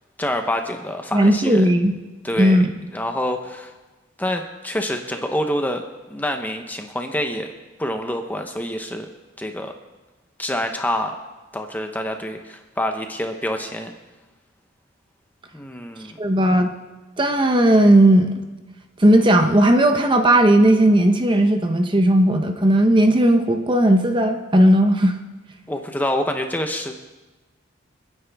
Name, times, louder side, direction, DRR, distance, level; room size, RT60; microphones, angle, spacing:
voice 1, 0.2-1.7 2.2-2.6 2.9-3.7 4.2-7.5 7.8-9.1 9.4-9.7 10.4-11.2 11.5-13.9 15.5-16.2 25.7-27.0, left 1 dB, 10° left, 5 dB, 0.8 m, -26 dB
voice 2, 1.1-1.9 2.4-2.7 16.2-16.7 17.2-18.3 19.0-25.2, right 1 dB, 25° right, 6 dB, 0.8 m, -16 dB
29.5 x 9.9 x 3.5 m, 1.2 s
head